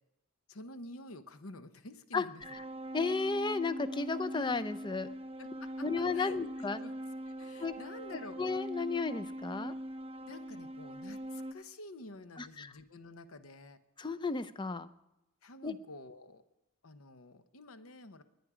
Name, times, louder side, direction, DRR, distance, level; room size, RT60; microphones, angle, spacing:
voice 1, 0.5-2.6 5.4-6.9 7.3-8.4 10.3-13.8 15.4-16.4 16.8-18.2, left 2 dB, 65° left, 10 dB, 1.0 m, -49 dB
sound 1, 2.4-11.5, right 1 dB, 25° right, 0.6 m, -42 dB
voice 2, 2.9-5.1 5.8-6.8 7.6-7.8 8.4-9.7 12.4-12.7 14.0-14.9 15.6-15.7, left 4 dB, 20° left, 14 dB, 0.5 m, -33 dB
21.0 x 9.7 x 4.9 m, 0.95 s
head